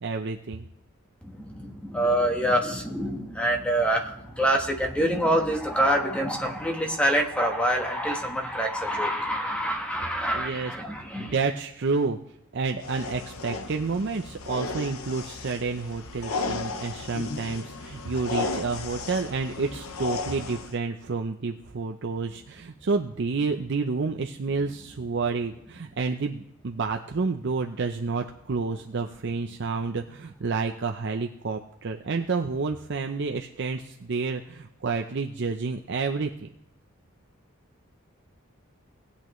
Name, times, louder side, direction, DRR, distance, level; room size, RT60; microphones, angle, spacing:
voice 1, 0.0-0.7 10.3-12.2 12.5-36.5, right 4 dB, 55° right, 4 dB, 0.6 m, -29 dB
voice 2, 1.2-11.3, right 1 dB, 5° left, 2 dB, 1.2 m, -26 dB
sound 1, 12.8-20.8, left 3 dB, 80° left, 0.8 m, -34 dB
18.5 x 8.3 x 3.1 m, 0.84 s
head